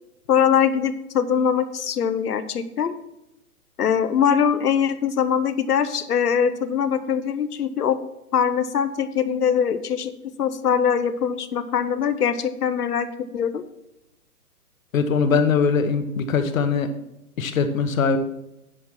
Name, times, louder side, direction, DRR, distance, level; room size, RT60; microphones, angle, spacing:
voice 1, 0.3-2.9 3.8-8.0 8.3-10.1 10.4-13.6, left 7 dB, 80° left, 12 dB, 0.9 m, -22 dB
voice 2, 14.9-16.9 17.4-18.2, left 5 dB, 60° left, 8 dB, 1.2 m, -21 dB
10.0 x 4.8 x 6.0 m, 0.89 s
hypercardioid pair, 145°, 45 cm